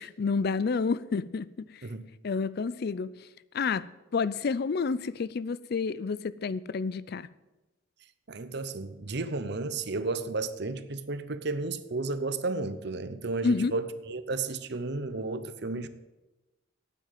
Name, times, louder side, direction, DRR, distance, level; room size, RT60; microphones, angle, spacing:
voice 1, 0.0-1.7 2.2-3.1 3.5-7.3 13.4-13.7, left 4 dB, 55° left, 0.4 m, -29 dB
voice 2, 8.3-15.9, right 3 dB, 60° right, 0.8 m, -33 dB
9.2 x 8.8 x 9.1 m
head